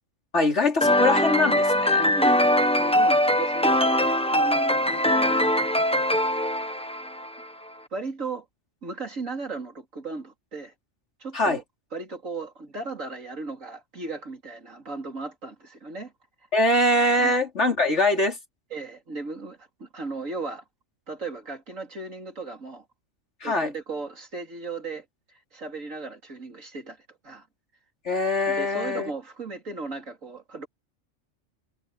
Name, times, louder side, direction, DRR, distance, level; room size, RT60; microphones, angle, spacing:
voice 1, 0.3-2.1 11.3-11.6 16.5-18.4 23.4-23.7 28.1-29.1, left 1 dB, 60° left, 3.9 m, -23 dB
sound 1, 0.8-7.4, left 1 dB, 5° left, 0.9 m, -22 dB
voice 2, 2.0-5.5 7.9-8.5 8.8-10.7 11.2-11.6 11.9-16.1 17.2-17.3 18.7-20.6 21.1-22.8 23.4-25.0 25.5-27.5 28.5-30.7, right 3 dB, 85° right, 4.3 m, -36 dB
omnidirectional pair, 1.3 m